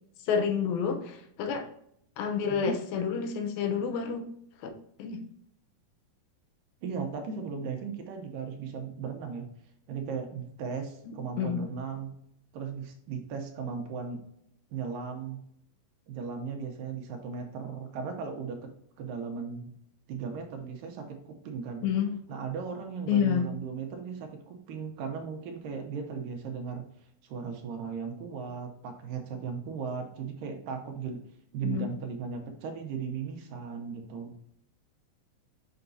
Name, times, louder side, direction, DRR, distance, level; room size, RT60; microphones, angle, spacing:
voice 1, 0.3-1.7 2.2-4.3 4.6-4.7 5.0-5.2 11.1-11.6 21.8-22.2 23.1-23.4 31.6-31.9, left 7 dB, 85° left, 6 dB, 2.6 m, -29 dB
voice 2, 2.4-2.8 6.8-9.5 9.9-12.1 12.5-14.2 14.7-15.4 16.1-18.7 19.0-19.7 20.1-21.9 22.3-26.8 27.2-31.2 31.5-34.3, right 6 dB, 75° right, 4 dB, 2.4 m, -37 dB
6.8 x 5.9 x 2.7 m, 0.71 s
omnidirectional pair, 4.2 m